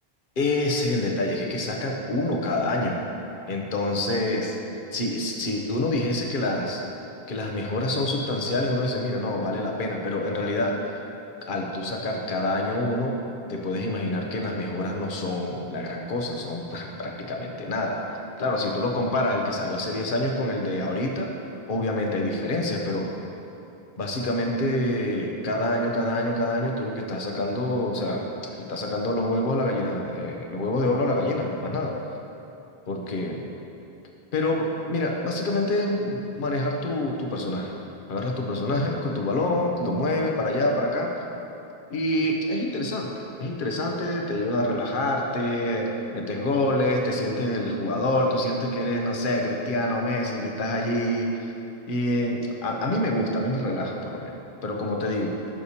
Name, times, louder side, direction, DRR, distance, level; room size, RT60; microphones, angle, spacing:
voice 1, 0.4-3.0 3.5-4.6 4.9-6.8 7.3-10.9 11.4-13.1 13.5-18.0 18.4-21.3 21.7-23.1 24.0-32.0 32.9-33.4 34.3-37.7 38.1-41.1 41.9-43.1 43.4-51.3 51.9-54.3 54.6-55.3, left 1 dB, 60° left, 1 dB, 1.1 m, -26 dB
14.0 x 6.6 x 2.8 m, 2.9 s
omnidirectional pair, 1.0 m